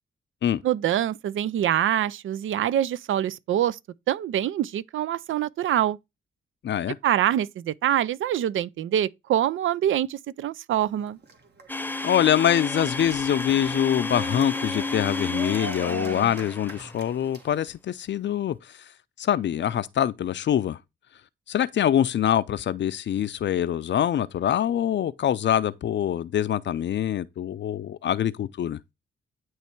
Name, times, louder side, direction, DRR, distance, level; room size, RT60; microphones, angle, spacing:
voice 1, 0.6-3.8 4.1-6.0 7.0-11.2, right 11 dB, 75° right, 0.5 m, -25 dB
voice 2, 6.6-7.0 12.0-18.6 19.2-20.8 21.5-28.8, left 10 dB, 60° left, 0.5 m, -24 dB
Cheering, 10.7-17.7, right 4 dB, 55° right, 1.5 m, -41 dB
Domestic sounds home sounds, 11.7-17.2, left 3 dB, 10° left, 0.3 m, -31 dB
9.2 x 3.2 x 4.4 m
cardioid pair, 90°, 21 cm